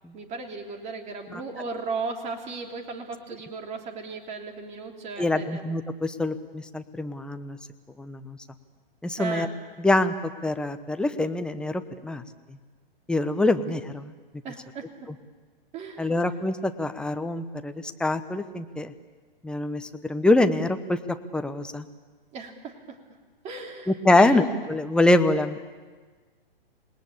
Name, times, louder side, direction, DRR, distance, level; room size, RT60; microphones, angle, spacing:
voice 1, 0.1-5.6 9.2-9.5 14.4-14.9 15.7-16.2 22.3-23.0 23.4-24.5, right 4 dB, 25° right, 2 dB, 3.2 m, -36 dB
voice 2, 5.2-7.6 8.0-8.4 9.0-9.5 9.8-10.1 10.4-12.2 13.1-14.1 16.0-17.7 18.0-18.9 19.4-21.8 23.9-25.6, left 2 dB, 5° left, 8 dB, 0.9 m, -24 dB
28.0 x 19.5 x 8.6 m, 1.4 s
hypercardioid pair, 125°, 29 cm